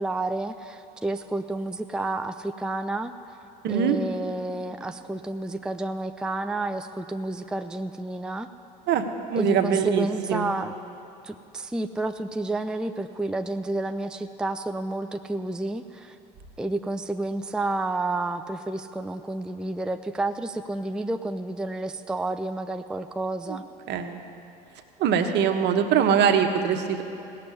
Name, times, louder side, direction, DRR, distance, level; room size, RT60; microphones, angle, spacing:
voice 1, 0.0-3.1 3.7-8.5 9.3-10.7 11.2-16.2 16.6-23.6, right 2 dB, 5° right, 7 dB, 0.5 m, -30 dB
voice 2, 3.6-4.0 8.9-9.0 9.3-10.5 23.5-23.6 23.9-24.2 25.0-27.0, right 7 dB, 55° right, 6 dB, 1.2 m, -23 dB
16.5 x 6.8 x 9.8 m, 2.8 s
hypercardioid pair, 70°, 21 cm